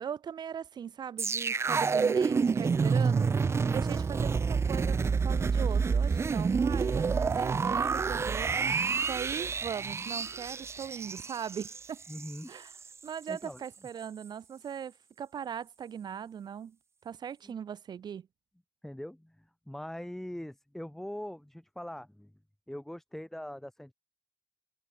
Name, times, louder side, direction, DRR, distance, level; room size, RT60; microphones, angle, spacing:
voice 1, 0.0-12.0 12.5-12.7 13.0-16.8 17.0-18.3, right 8 dB, 55° right, 1.0 m, -39 dB
sound 1, 1.2-12.4 12.7-12.9, right 5 dB, 30° right, 0.5 m, -28 dB
voice 2, 1.7-2.0 3.7-3.9 12.1-12.5 13.3-13.6 17.4-17.5 18.8-22.3 22.7-23.9, left 1 dB, 5° left, 1.0 m, -42 dB
cardioid pair, 120°, 9 cm